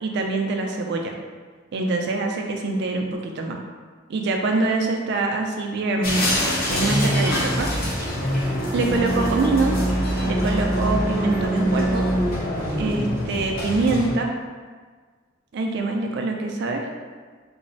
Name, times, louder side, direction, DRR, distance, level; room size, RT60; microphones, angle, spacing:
voice 1, 0.0-1.1 1.7-3.6 4.1-6.4 6.7-7.7 8.7-9.7 10.2-12.1 12.8-14.3 15.5-16.9, right 3 dB, 60° right, 2 dB, 0.3 m, -24 dB
sound 1, 6.0-14.1, equal, 50° left, 0.7 m, -24 dB
2.9 x 2.0 x 2.6 m, 1.5 s
head